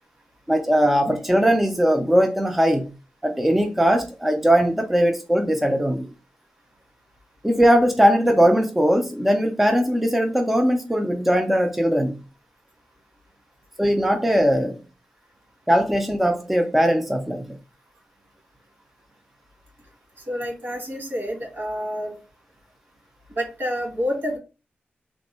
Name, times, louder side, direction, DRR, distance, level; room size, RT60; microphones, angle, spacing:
voice 1, 0.5-3.0 3.2-6.1 7.4-12.2 13.8-14.8 15.7-17.6, equal, 5° right, 0.4 m, -20 dB
voice 2, 20.3-22.1 23.3-24.4, equal, 65° right, 1.8 m, -28 dB
3.5 x 2.0 x 4.0 m
wide cardioid pair, 155°, 4 cm